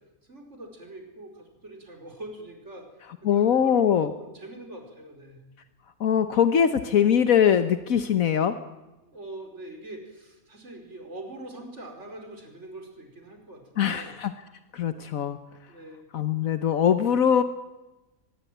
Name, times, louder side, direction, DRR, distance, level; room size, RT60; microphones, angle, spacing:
voice 1, 0.3-2.9 3.3-5.4 9.0-14.2 15.7-16.0, right 1 dB, 55° right, 3 dB, 5.2 m, -42 dB
voice 2, 3.2-4.1 6.0-8.6 13.8-14.3 14.7-15.4 16.1-17.4, left 8 dB, 75° left, 10 dB, 1.4 m, -22 dB
24.5 x 21.0 x 9.2 m, 1.1 s
omnidirectional pair, 1.4 m